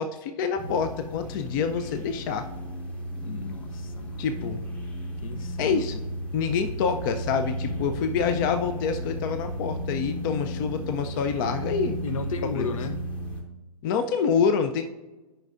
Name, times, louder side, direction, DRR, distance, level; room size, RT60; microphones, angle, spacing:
voice 1, 0.0-2.5 4.2-4.6 5.6-6.0 6.3-12.0 12.5-12.7 13.8-14.8, left 6 dB, 35° left, 0.5 m, -26 dB
sound 1, 0.6-13.4, equal, 5° left, 0.8 m, -34 dB
voice 2, 3.2-4.3 5.2-5.8 12.0-13.1, left 5 dB, 65° left, 0.7 m, -34 dB
9.0 x 5.5 x 2.5 m
hypercardioid pair, 140°, 19 cm